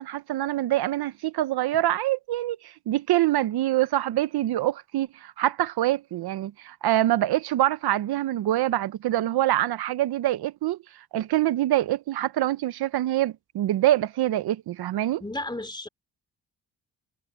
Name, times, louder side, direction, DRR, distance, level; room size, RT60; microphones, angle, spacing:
voice 1, 0.0-10.8 11.1-15.2, right 14 dB, 70° right, 0.8 m, -25 dB
voice 2, 15.2-15.9, left 1 dB, 10° left, 3.1 m, -33 dB
cardioid pair, 80°, 39 cm